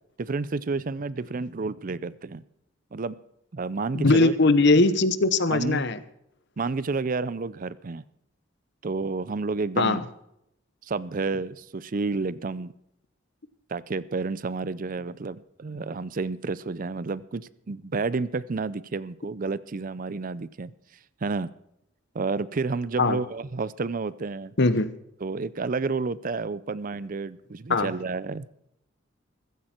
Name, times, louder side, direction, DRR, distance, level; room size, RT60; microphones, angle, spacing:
voice 1, 0.2-2.4 2.9-3.2 3.5-4.3 4.7-4.8 5.5-5.8 6.6-8.0 8.8-10.0 10.8-12.7 13.7-20.7 21.2-21.5 22.1-24.5 25.2-28.5, right 4 dB, 45° right, 18 dB, 0.5 m, -30 dB
voice 2, 3.9-6.0 9.8-10.0 23.0-23.2 24.6-24.9 27.7-27.9, left 3 dB, 60° left, 14 dB, 1.0 m, -20 dB
15.0 x 14.5 x 4.4 m, 0.80 s
head